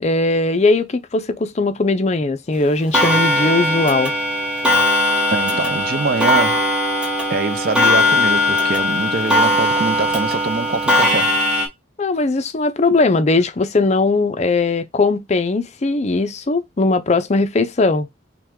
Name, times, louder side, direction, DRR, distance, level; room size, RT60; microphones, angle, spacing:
voice 1, 0.0-4.1 12.0-18.1, left 3 dB, 35° left, 0.5 m, -19 dB
Clock, 2.9-11.7, left 1 dB, 5° right, 0.9 m, -18 dB
voice 2, 5.3-6.7 7.3-11.4, right 4 dB, 50° right, 0.5 m, -23 dB
5.9 x 2.2 x 3.6 m
head